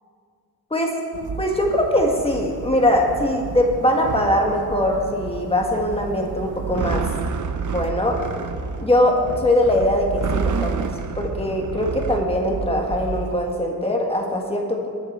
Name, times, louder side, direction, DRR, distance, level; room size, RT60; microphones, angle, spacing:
sound 1, 1.1-13.5, right 5 dB, 55° right, 0.6 m, -30 dB
voice 1, 1.4-7.0 7.6-8.2 8.8-10.9 11.2-14.9, left 1 dB, 15° left, 1 dB, 1.5 m, -21 dB
20.5 x 7.0 x 4.3 m, 2.2 s
wide cardioid pair, 150°, 36 cm